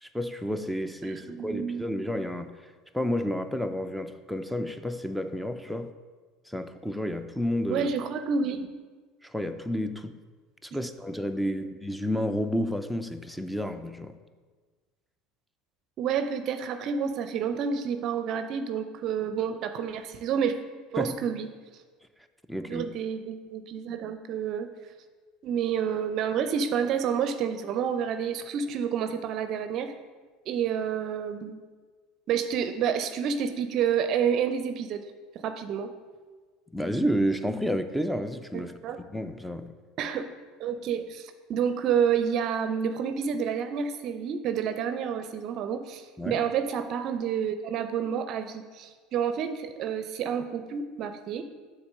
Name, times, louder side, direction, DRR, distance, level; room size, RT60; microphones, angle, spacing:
voice 1, 0.0-2.5 2.9-5.9 6.5-7.9 9.2-10.2 10.6-14.2 21.0-21.2 22.5-22.9 36.7-39.7 46.2-46.4, equal, ahead, 9 dB, 0.5 m, -30 dB
voice 2, 1.0-1.9 7.7-8.7 11.6-11.7 16.0-20.6 20.9-21.5 22.7-24.7 25.4-29.9 30.5-31.6 32.3-35.1 35.4-35.9 38.5-39.0 40.0-40.3 40.6-51.4, right 7 dB, 55° right, 9 dB, 0.5 m, -29 dB
7.1 x 3.8 x 6.4 m, 1.4 s
hypercardioid pair, 85°, 0 cm